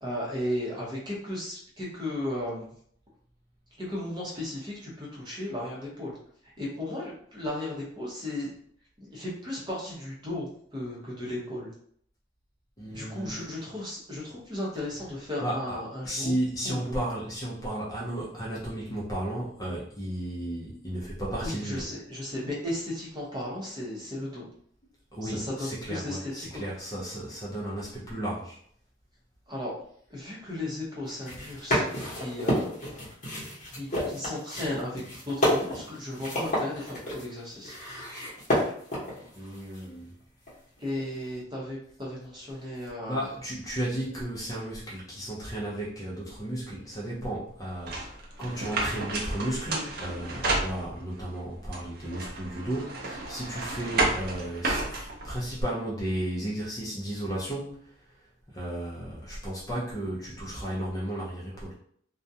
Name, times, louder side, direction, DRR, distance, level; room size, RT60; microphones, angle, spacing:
voice 1, 0.0-2.7 3.8-6.1 6.4-8.5 9.0-11.7 12.9-16.3 16.6-17.0 21.4-24.5 25.2-26.6 29.5-29.7 30.1-32.8 33.8-37.7 40.8-43.3, left 1 dB, 25° right, -4 dB, 0.8 m, -35 dB
voice 2, 12.8-13.4 15.4-15.8 16.0-21.8 25.1-28.6 31.6-31.7 39.3-40.1 43.1-57.9 58.5-61.7, right 1 dB, 20° left, -5 dB, 0.5 m, -34 dB
sound 1, 31.0-39.8 40.5-41.0, left 1 dB, 40° left, 1.0 m, -30 dB
sound 2, 47.9-51.2 51.7-55.6, right 2 dB, 55° right, 0.5 m, -31 dB
2.4 x 2.1 x 2.6 m, 0.62 s
head